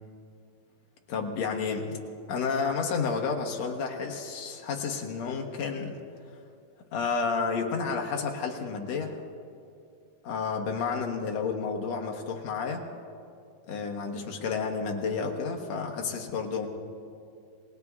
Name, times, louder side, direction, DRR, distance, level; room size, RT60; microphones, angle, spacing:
voice 1, 1.1-2.0 2.3-6.0 6.9-9.2 10.3-12.8 13.7-16.7, left 5 dB, 70° left, 2 dB, 1.6 m, -31 dB
28.0 x 19.5 x 2.4 m, 2.4 s
omnidirectional pair, 4.6 m